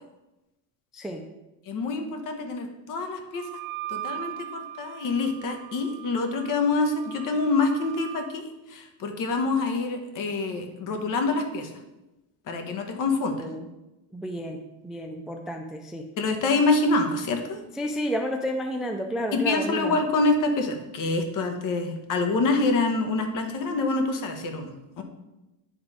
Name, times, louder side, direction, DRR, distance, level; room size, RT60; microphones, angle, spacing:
voice 1, 0.9-1.2 13.4-13.7 14.1-16.1 17.8-20.0, equal, ahead, 4 dB, 0.3 m, -31 dB
voice 2, 1.7-3.5 3.9-11.7 12.5-13.5 16.2-17.6 19.3-25.0, left 3 dB, 50° left, 5 dB, 1.3 m, -26 dB
Wind instrument woodwind instrument, 3.3-8.3, right 14 dB, 70° right, 0.9 m, -39 dB
10.0 x 3.6 x 4.8 m, 1.0 s
cardioid pair, 125°, 40 cm